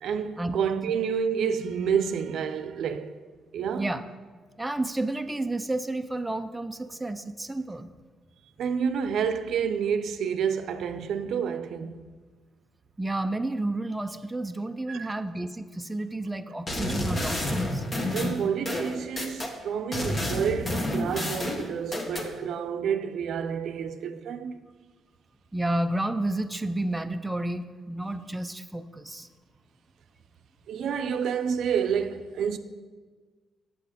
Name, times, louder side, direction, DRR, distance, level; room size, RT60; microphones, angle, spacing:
voice 1, 0.0-3.2 3.5-3.9 8.6-12.0 14.9-15.2 18.1-24.6 30.7-32.6, right 7 dB, 70° right, 0.6 m, -29 dB
voice 2, 4.6-7.9 13.0-17.9 25.5-29.3, right 2 dB, 10° right, 0.5 m, -31 dB
sound 1, 16.7-19.5 19.9-22.3, left 1 dB, 35° left, 1.4 m, -29 dB
8.3 x 7.6 x 5.1 m
cardioid pair, 90°, 0 cm